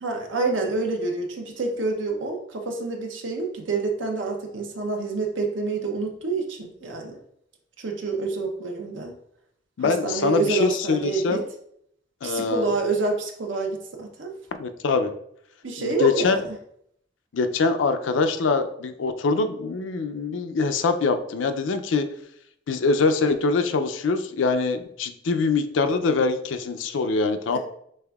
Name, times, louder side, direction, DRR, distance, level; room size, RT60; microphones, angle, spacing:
voice 1, 0.0-7.2 7.8-9.1 9.8-11.4 12.2-14.3 15.6-16.5 27.5-27.6, right 3 dB, 85° right, 2 dB, 0.7 m, -27 dB
voice 2, 9.8-11.4 12.2-12.7 14.6-15.1 15.8-16.4 17.3-22.1 22.7-27.6, left 4 dB, 90° left, 8 dB, 0.4 m, -23 dB
5.4 x 3.3 x 2.3 m, 0.71 s
head